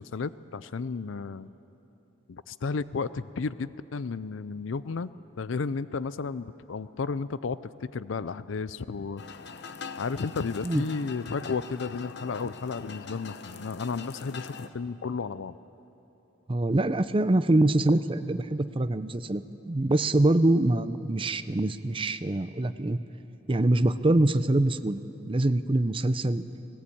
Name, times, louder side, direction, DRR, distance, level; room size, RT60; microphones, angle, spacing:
voice 1, 0.0-1.5 2.3-9.2 10.0-15.6, left 4 dB, 80° left, 16 dB, 0.5 m, -33 dB
sound 1, 9.2-14.7, left 5 dB, 60° left, 0.9 m, -42 dB
voice 2, 16.5-19.4 19.7-23.0 23.5-25.0 25.3-26.5, right 2 dB, 25° right, 12 dB, 0.6 m, -24 dB
19.0 x 18.5 x 8.6 m, 3.0 s
head